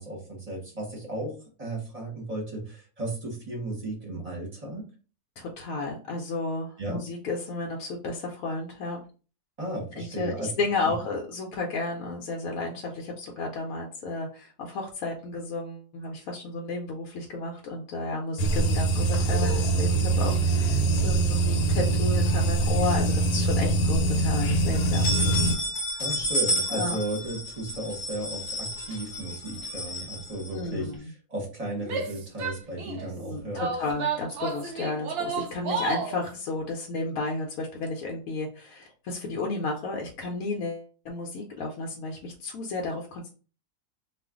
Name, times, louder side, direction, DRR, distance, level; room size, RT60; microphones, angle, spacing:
voice 1, 0.0-4.9 6.8-7.0 9.6-10.5 10.8-10.9 26.0-30.9 31.3-33.7, right 1 dB, 30° right, -2 dB, 0.9 m, -35 dB
voice 2, 5.4-9.0 10.0-25.3 26.7-27.0 28.9-29.0 30.5-31.1 33.2-43.3, left 3 dB, 70° left, 0 dB, 1.0 m, -32 dB
sound 1, 18.4-25.6, right 3 dB, 90° left, 1.2 m, -23 dB
sound 2, 22.3-23.2 23.6-23.7 24.1-24.2 24.7-30.9, equal, 45° left, 0.7 m, -31 dB
Female speech woman speaking / Yell, 31.8-33.1 33.6-36.2, right 4 dB, 75° right, 0.5 m, -31 dB
2.4 x 2.4 x 3.5 m, 0.37 s
omnidirectional pair, 1.7 m